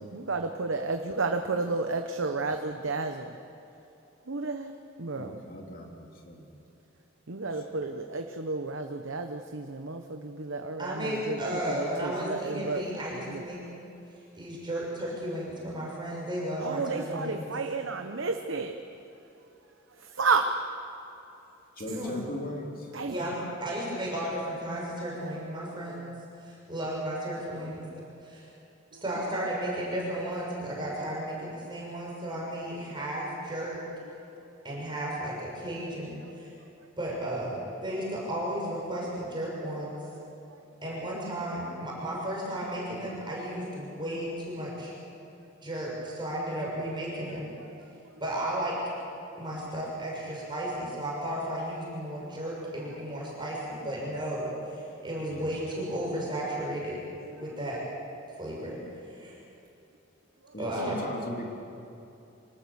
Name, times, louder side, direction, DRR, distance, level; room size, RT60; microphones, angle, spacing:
voice 1, 0.1-3.4 4.3-4.7 5.0-5.4 7.3-13.5 16.6-18.8 20.0-20.5 22.9-23.3 25.2-26.1 27.5-28.0 28.9-29.0 31.6-32.1 44.2-44.3 47.6-47.7 55.1-55.2 57.5-57.6, right 3 dB, 70° right, 5 dB, 1.0 m, -32 dB
voice 2, 5.2-6.6 7.9-8.0 21.8-22.9 55.3-55.6 60.5-61.5, left 1 dB, 45° left, 0 dB, 3.1 m, -39 dB
voice 3, 10.8-13.6 14.3-17.4 21.9-22.2 23.0-26.1 26.4-27.9 28.2-28.5 29.0-33.8 34.6-36.5 37.0-40.0 40.8-44.9 45.6-47.6 48.2-48.8 49.4-57.0 57.4-57.8 58.4-58.8 59.0-59.4 60.6-61.0, right 1 dB, 25° right, -4 dB, 6.1 m, -34 dB
25.5 x 19.0 x 7.1 m, 2.8 s
head